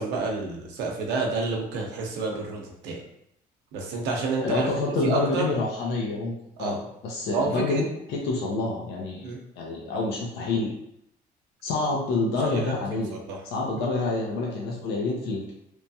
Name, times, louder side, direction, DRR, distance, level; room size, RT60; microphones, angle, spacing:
voice 1, 0.0-3.0 3.7-4.7 5.0-5.5 6.6-6.8 7.3-7.8 9.2-9.4 12.4-12.7 13.1-13.4 13.8-13.9, right 3 dB, 90° right, 0 dB, 0.7 m, -29 dB
voice 2, 4.4-6.3 6.6-6.8 7.0-10.7 11.6-13.2 13.5-15.5, left 3 dB, 80° left, -2 dB, 0.6 m, -27 dB
3.0 x 2.2 x 2.7 m, 0.76 s
cardioid pair, 110°, 17 cm